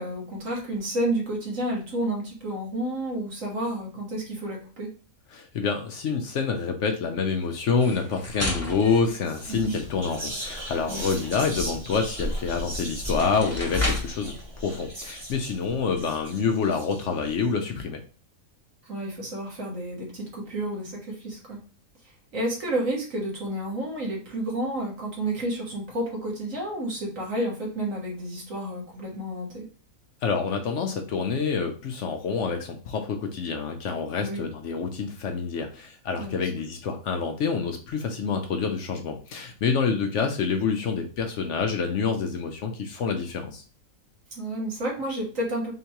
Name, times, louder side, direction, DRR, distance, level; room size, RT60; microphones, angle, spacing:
voice 1, 0.0-4.9 9.5-9.8 10.9-11.2 18.8-21.6 22.0-29.6 34.2-34.5 36.2-36.5 44.3-45.7, right 1 dB, 65° right, -2 dB, 1.7 m, -31 dB
voice 2, 5.3-18.0 30.2-43.6, left 5 dB, 65° left, 4 dB, 0.8 m, -27 dB
sound 1, 7.8-10.1 12.5-12.6 13.0-14.2, left 1 dB, 15° left, 0.8 m, -34 dB
Whispering, 8.8-9.0 9.2-17.3, left 1 dB, 20° right, 0.9 m, -35 dB
3.8 x 3.4 x 2.8 m, 0.38 s
omnidirectional pair, 1.5 m